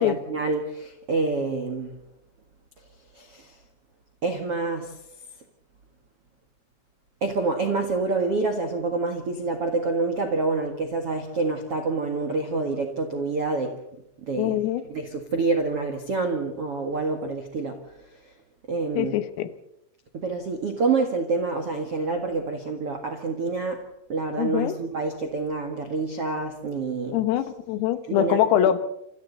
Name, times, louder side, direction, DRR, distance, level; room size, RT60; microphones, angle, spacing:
voice 1, 0.0-2.0 3.1-3.6 4.2-5.0 7.2-13.8 14.3-14.6 14.9-17.8 18.1-18.2 18.7-19.2 20.1-27.2 28.1-28.7, right 3 dB, 70° right, 4 dB, 1.4 m, -27 dB
voice 2, 14.4-14.8 19.0-19.5 24.4-24.8 27.1-28.8, left 12 dB, 90° left, 11 dB, 4.0 m, -23 dB
28.0 x 27.0 x 4.1 m, 0.81 s
omnidirectional pair, 5.9 m